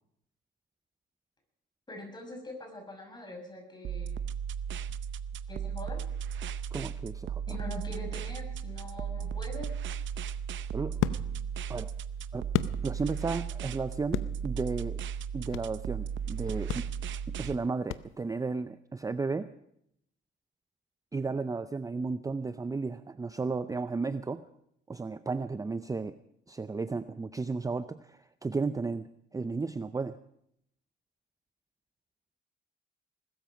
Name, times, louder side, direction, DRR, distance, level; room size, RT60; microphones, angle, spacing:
voice 1, 1.9-4.2 5.5-6.0 7.5-9.7, left 1 dB, 20° left, 3 dB, 6.2 m, -43 dB
sound 1, 3.8-17.6, right 7 dB, 70° right, 0.7 m, -36 dB
voice 2, 6.7-7.4 10.7-11.0 11.7-11.9 12.3-12.5 12.8-15.0 15.3-16.9 17.3-19.5 21.1-24.4 24.9-26.2 26.5-30.2, right 4 dB, 15° right, 13 dB, 0.5 m, -34 dB
sound 2, 9.9-13.3 13.7-15.8 16.2-16.3 16.7-18.5, left 12 dB, 90° left, 0.7 m, -35 dB
20.5 x 13.5 x 5.1 m, 0.76 s
cardioid pair, 90°, 20 cm